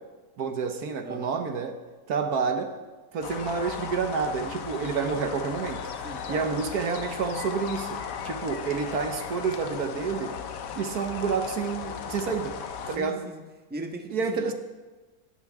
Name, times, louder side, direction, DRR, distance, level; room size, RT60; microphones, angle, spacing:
voice 1, 0.4-1.8 2.1-2.8 3.1-5.9 6.3-10.4 10.7-12.6 12.9-13.2 14.1-14.5, right 5 dB, 65° right, 7 dB, 1.5 m, -29 dB
voice 2, 1.0-1.4 5.9-6.6 12.9-13.4 13.7-14.5, right 2 dB, 5° right, 3 dB, 1.2 m, -39 dB
sound 1, 3.2-13.0, left 7 dB, 90° left, 1.6 m, -36 dB
24.5 x 12.5 x 3.6 m, 1.3 s
omnidirectional pair, 1.8 m